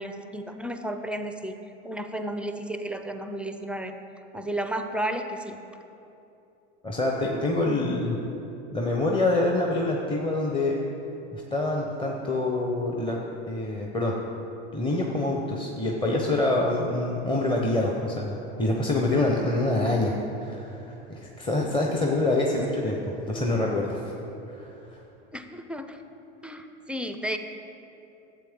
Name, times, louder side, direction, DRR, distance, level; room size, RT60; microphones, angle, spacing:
voice 1, 0.0-1.6 1.8-3.9 4.3-5.6 25.3-26.0 26.4-27.4, right 1 dB, 5° right, 7 dB, 0.4 m, -33 dB
voice 2, 6.8-8.2 8.7-10.8 11.3-13.2 13.5-14.1 14.7-20.1 20.4-24.1 24.5-24.7, left 2 dB, 15° left, -1 dB, 0.9 m, -26 dB
11.5 x 7.8 x 3.7 m, 2.9 s
hypercardioid pair, 95°, 34 cm